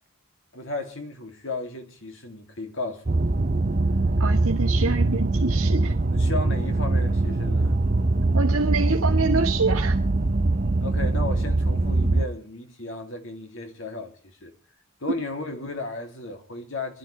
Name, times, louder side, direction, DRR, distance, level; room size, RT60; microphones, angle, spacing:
voice 1, 0.5-3.2 6.1-7.8 10.8-14.5 15.0-17.0, left 2 dB, 60° left, 2.7 m, -34 dB
sound 1, 3.1-12.3, right 2 dB, 40° right, 0.7 m, -22 dB
voice 2, 4.2-6.0 8.3-10.0, right 3 dB, 80° right, 1.6 m, -26 dB
27.0 x 11.5 x 3.3 m
head